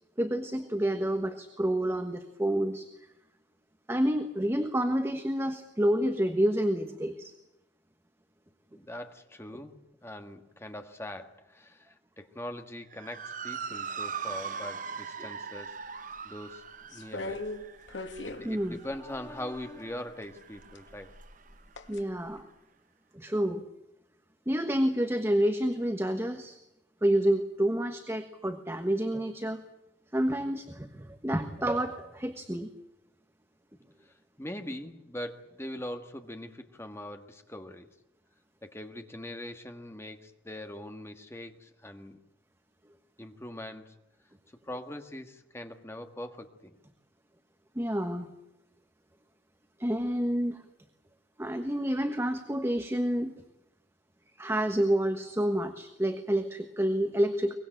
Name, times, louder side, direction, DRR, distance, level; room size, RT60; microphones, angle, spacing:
voice 1, 0.2-2.9 3.9-7.3 18.4-18.8 21.9-22.4 23.1-23.7 24.5-26.6 27.0-29.6 30.1-32.7 47.7-48.3 49.8-50.6 51.4-53.3 54.4-57.5, right 1 dB, 15° right, 6 dB, 1.3 m, -28 dB
voice 2, 8.7-16.6 16.9-17.4 18.3-21.2 34.0-37.9 38.6-42.2 43.2-43.9 44.6-46.8, left 1 dB, 15° left, 6 dB, 1.7 m, -42 dB
Motor vehicle (road) / Siren, 12.9-21.5, right 6 dB, 45° right, 0.8 m, -41 dB
sound 1, 16.9-19.7 20.6-22.0 22.4-22.5, left 2 dB, 85° left, 2.1 m, -40 dB
23.5 x 21.0 x 9.1 m, 0.90 s
head